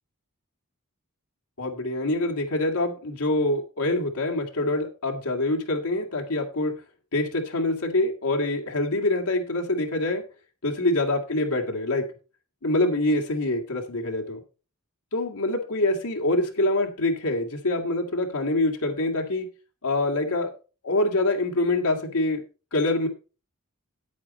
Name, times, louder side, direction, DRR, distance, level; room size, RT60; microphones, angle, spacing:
voice 1, 1.6-6.7 7.1-10.2 10.6-12.0 12.6-14.4 15.1-19.5 19.8-20.5 20.8-22.4 22.7-23.1, left 2 dB, 75° left, 1 dB, 2.2 m, -25 dB
9.8 x 8.6 x 4.3 m, 0.33 s
head